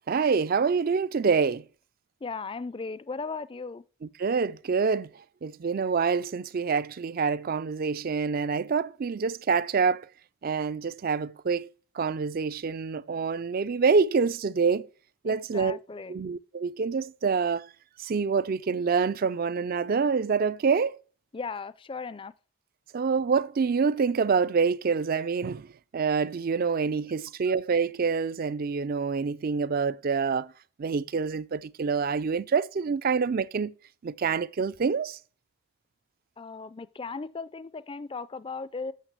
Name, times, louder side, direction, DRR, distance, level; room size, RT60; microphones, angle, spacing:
voice 1, 0.1-1.6 4.0-5.1 5.4-10.1 10.4-11.7 12.0-14.9 15.2-15.8 16.1-17.7 18.0-21.0 22.9-30.5 30.8-33.7 34.0-35.2, right 5 dB, 45° right, 0.4 m, -26 dB
voice 2, 2.2-3.8 15.2-16.2 21.3-22.3 36.4-38.9, left 4 dB, 25° left, 0.4 m, -37 dB
9.2 x 6.5 x 6.5 m
head